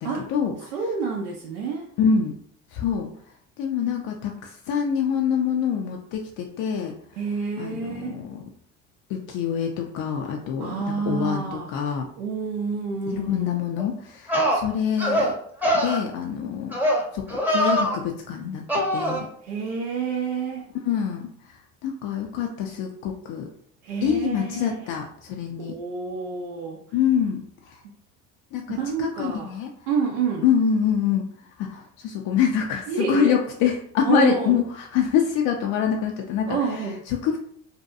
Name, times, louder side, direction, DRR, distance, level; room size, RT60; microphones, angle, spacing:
voice 1, 0.0-0.5 2.0-2.3 2.7-3.1 3.6-6.9 7.6-8.5 9.1-12.1 13.1-15.3 15.7-16.7 17.1-19.3 20.9-21.3 21.8-23.5 24.0-25.7 26.9-27.4 28.5-29.7 30.4-31.3 31.6-36.6 37.1-37.4, left 7 dB, 50° left, 1 dB, 0.5 m, -25 dB
voice 2, 0.6-1.9 7.2-8.2 10.6-11.7 12.2-13.5 19.4-20.7 23.8-24.9 25.6-26.8 28.7-29.5 29.9-30.5 32.9-33.4 34.0-34.6 36.5-37.0, right 5 dB, 80° right, -1 dB, 0.5 m, -28 dB
sound 1, 13.8-13.9 14.3-14.6 15.0-15.3 15.6-16.0 16.7-17.0 17.3-18.0 18.7-19.2, equal, 5° right, 0.7 m, -22 dB
2.7 x 2.2 x 2.5 m, 0.63 s
hypercardioid pair, 65°, 41 cm